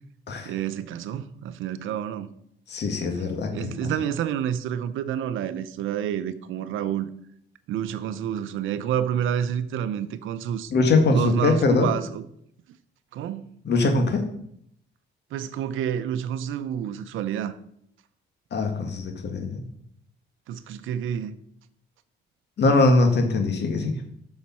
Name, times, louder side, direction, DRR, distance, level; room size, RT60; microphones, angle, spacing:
voice 1, 0.5-2.3 3.5-7.1 7.7-10.7 11.1-12.2 13.1-13.6 15.3-17.5 20.5-21.4, right 9 dB, 85° right, 13 dB, 0.7 m, -29 dB
voice 2, 2.7-3.9 10.7-11.9 13.7-14.2 18.5-19.6 22.6-24.0, left 3 dB, 60° left, 4 dB, 2.0 m, -22 dB
7.2 x 6.6 x 6.0 m, 0.71 s
cardioid pair, 90°, 20 cm